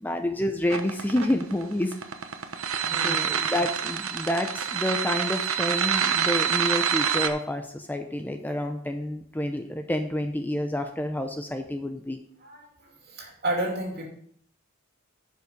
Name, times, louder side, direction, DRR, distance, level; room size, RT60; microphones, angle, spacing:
voice 1, 0.0-2.0 3.0-12.2, left 1 dB, 10° left, 6 dB, 0.6 m, -29 dB
sound 1, 0.7-7.3, right 7 dB, 75° right, 1.0 m, -26 dB
voice 2, 2.8-3.3 12.4-14.0, right 1 dB, 50° right, 0 dB, 2.7 m, -32 dB
10.5 x 5.6 x 5.2 m, 0.64 s
head